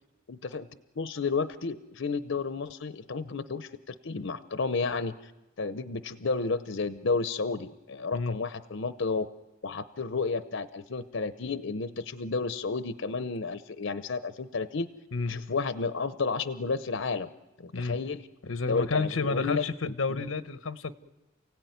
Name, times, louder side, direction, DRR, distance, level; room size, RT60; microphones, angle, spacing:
voice 1, 0.3-0.7 1.0-5.3 5.6-9.3 9.6-14.9 15.3-17.3 17.6-18.2 18.7-20.2, left 4 dB, 65° left, 12 dB, 0.8 m, -32 dB
voice 2, 18.4-21.0, left 4 dB, 90° left, 12 dB, 1.0 m, -30 dB
29.0 x 17.0 x 9.4 m, 1.1 s
head